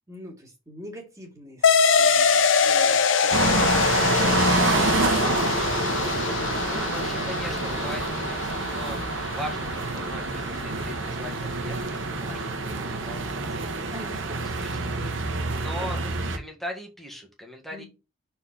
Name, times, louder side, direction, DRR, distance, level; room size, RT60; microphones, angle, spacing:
voice 1, 0.1-5.6 12.2-13.0 13.8-14.6 15.3-16.1 17.7-17.9, equal, 15° right, 0 dB, 2.2 m, -45 dB
sound 1, 1.6-10.7, left 6 dB, 80° left, 0.7 m, -24 dB
sound 2, 3.3-16.4, right 3 dB, 80° right, 1.0 m, -27 dB
voice 2, 6.6-11.8 12.1-13.9 14.3-16.0 16.3-17.9, equal, ahead, 1 dB, 1.6 m, -40 dB
4.4 x 4.1 x 5.7 m, 0.27 s
head